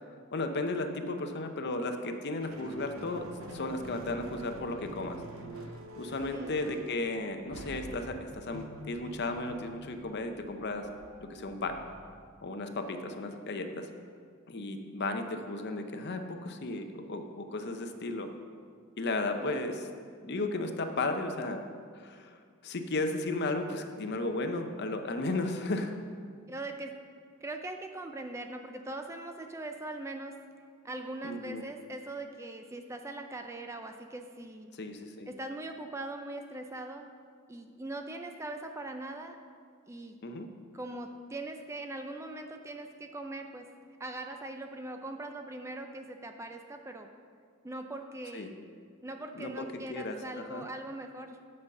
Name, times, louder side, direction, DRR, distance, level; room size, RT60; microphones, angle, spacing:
voice 1, 0.3-5.2 5.6-10.9 11.2-11.8 12.4-13.9 14.5-18.3 19.0-19.9 20.2-21.6 21.9-22.4 22.6-26.0 31.2-31.6 34.7-35.3 40.2-40.5 48.3-48.5 49.4-50.7, left 2 dB, 50° left, 6 dB, 0.7 m, -34 dB
sound 1, 2.4-12.5, right 1 dB, 70° right, 0.8 m, -47 dB
voice 2, 6.3-6.6 19.4-19.7 26.5-27.0 27.4-30.4 30.8-34.7 35.3-37.1 37.5-39.4 39.9-40.2 40.7-43.7 44.0-47.1 47.6-48.5 49.0-51.4, right 2 dB, 15° right, 5 dB, 0.4 m, -41 dB
8.7 x 5.5 x 6.5 m, 2.1 s
head